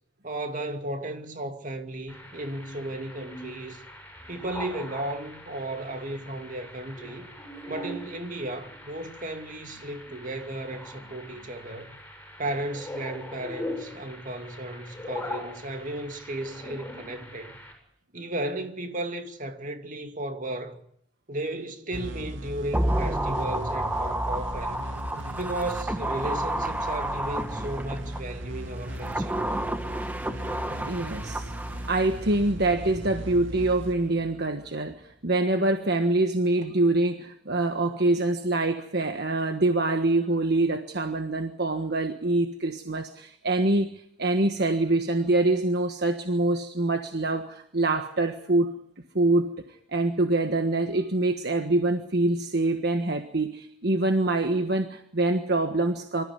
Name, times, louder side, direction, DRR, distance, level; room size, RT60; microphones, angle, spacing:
voice 1, 0.2-3.8 4.3-7.3 7.7-11.9 12.4-17.6 18.1-20.8 21.3-24.9 25.4-29.4, right 1 dB, 45° right, 2.5 m, -34 dB
sound 1, 2.1-17.7, left 1 dB, 10° left, 7.6 m, -42 dB
sound 2, 21.9-35.2, right 1 dB, 85° right, 2.1 m, -37 dB
sound 3, 22.7-28.2 28.8-32.1 32.3-32.4, right 1 dB, 10° right, 1.4 m, -30 dB
voice 2, 30.8-31.5 31.9-34.9 35.2-43.9 44.2-48.7 49.1-49.5 49.9-56.2, right 2 dB, 60° right, 1.5 m, -25 dB
25.5 x 14.5 x 9.6 m
head